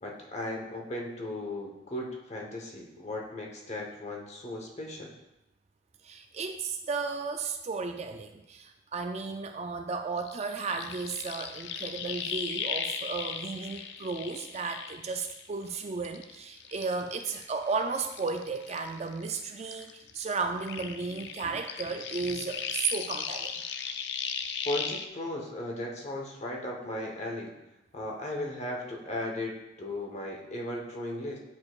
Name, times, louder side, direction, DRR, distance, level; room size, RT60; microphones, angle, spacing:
voice 1, 0.0-5.1 24.6-27.5 27.9-31.4, left 1 dB, 35° left, 0 dB, 1.0 m, -36 dB
voice 2, 6.0-23.5, right 4 dB, 30° right, 6 dB, 0.3 m, -34 dB
sound 1, 10.2-15.7 16.0-19.4 19.7-25.1, left 7 dB, 55° left, 0.4 m, -37 dB
8.5 x 6.2 x 2.4 m, 0.94 s
head